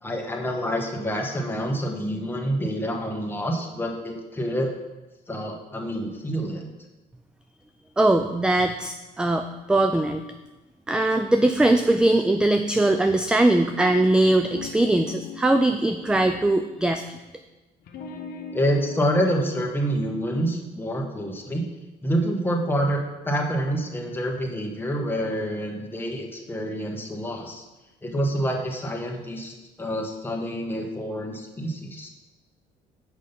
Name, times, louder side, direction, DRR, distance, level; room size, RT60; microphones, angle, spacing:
voice 1, 0.0-4.7 5.3-6.6 18.5-21.6 22.0-27.6 28.0-32.1, equal, 10° left, 1 dB, 1.2 m, -27 dB
voice 2, 8.0-10.2 10.9-17.0, right 2 dB, 5° right, 7 dB, 0.3 m, -21 dB
sound 1, 14.4-16.8 17.8-19.6, left 5 dB, 65° left, 0.8 m, -40 dB
6.3 x 5.2 x 5.5 m, 1.1 s
cardioid pair, 110°, 17 cm